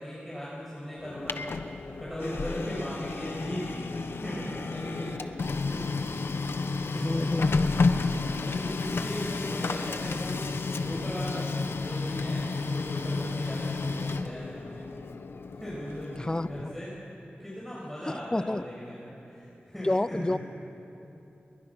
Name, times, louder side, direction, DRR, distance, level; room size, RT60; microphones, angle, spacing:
voice 1, 0.0-5.9 6.6-7.5 8.4-11.5 11.8-14.9 15.6-16.2 16.4-17.0 17.4-20.4, equal, 5° left, -7 dB, 7.3 m, -38 dB
Printer, 1.0-16.8, left 4 dB, 80° left, 1.1 m, -31 dB
voice 2, 6.9-7.8 16.2-16.7 18.1-18.6 19.8-20.4, left 1 dB, 20° left, 14 dB, 0.7 m, -29 dB
29.5 x 22.0 x 6.3 m, 3.0 s
wide cardioid pair, 65°, 4 cm